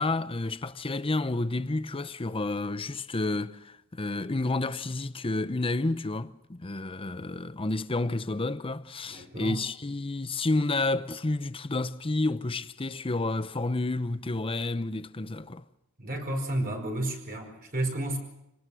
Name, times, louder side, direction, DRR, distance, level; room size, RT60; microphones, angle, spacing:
voice 1, 0.0-15.6, left 2 dB, 25° left, 0.7 m, -30 dB
voice 2, 9.0-9.6 16.0-18.2, right 1 dB, 40° right, 5.0 m, -32 dB
27.0 x 19.0 x 6.3 m
head